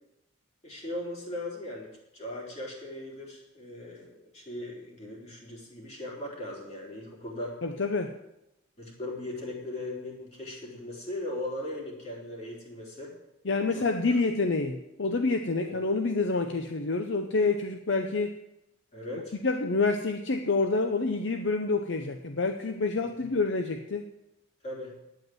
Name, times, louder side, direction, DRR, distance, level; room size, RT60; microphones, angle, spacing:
voice 1, 0.6-7.6 8.8-13.1 13.7-14.2 15.5-15.8 18.9-19.4 24.6-25.0, left 1 dB, 35° left, -3 dB, 3.5 m, -38 dB
voice 2, 7.6-8.2 13.4-18.3 19.4-24.0, left 3 dB, 60° left, 6 dB, 0.7 m, -27 dB
9.2 x 8.1 x 9.3 m, 0.87 s
head